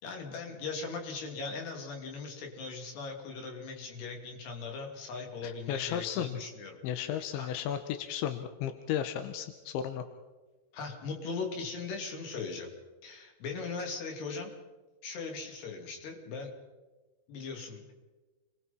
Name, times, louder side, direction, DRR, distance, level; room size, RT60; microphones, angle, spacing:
voice 1, 0.0-6.8 7.0-7.6 10.7-12.7 13.0-14.5 15.0-16.5 17.3-17.9, left 4 dB, 65° left, 2 dB, 5.0 m, -39 dB
voice 2, 5.4-6.4 6.8-10.0, left 10 dB, 90° left, 8 dB, 3.3 m, -34 dB
29.5 x 22.0 x 4.4 m, 1.2 s
omnidirectional pair, 5.3 m